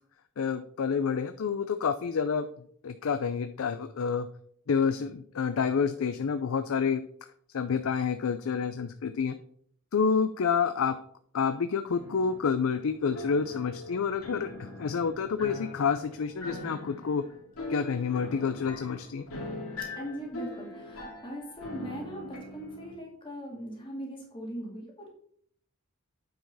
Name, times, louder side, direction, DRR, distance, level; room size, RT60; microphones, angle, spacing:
voice 1, 0.4-2.5 2.8-4.3 4.7-7.0 7.5-9.4 9.9-11.0 11.3-17.2 17.7-19.2, left 6 dB, 65° left, 9 dB, 0.4 m, -28 dB
sound 1, 11.9-22.9, left 2 dB, 90° left, 2.3 m, -42 dB
voice 2, 20.0-25.1, equal, 25° left, -2 dB, 2.2 m, -40 dB
9.1 x 5.0 x 4.1 m, 0.64 s
head